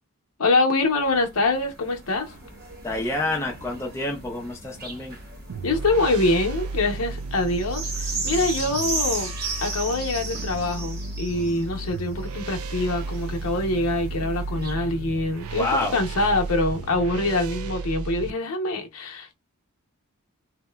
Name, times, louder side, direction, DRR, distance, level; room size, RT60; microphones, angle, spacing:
voice 1, 0.4-2.3 5.6-9.3 9.6-19.4, left 2 dB, 75° left, 0.7 m, -24 dB
sound 1, 0.8-16.7 17.3-17.4, right 3 dB, 45° right, 0.8 m, -36 dB
voice 2, 2.8-5.2 15.5-15.9, left 2 dB, 10° left, 0.5 m, -28 dB
sound 2, 5.5-18.3, right 3 dB, 75° right, 0.3 m, -33 dB
2.8 x 2.1 x 2.2 m
head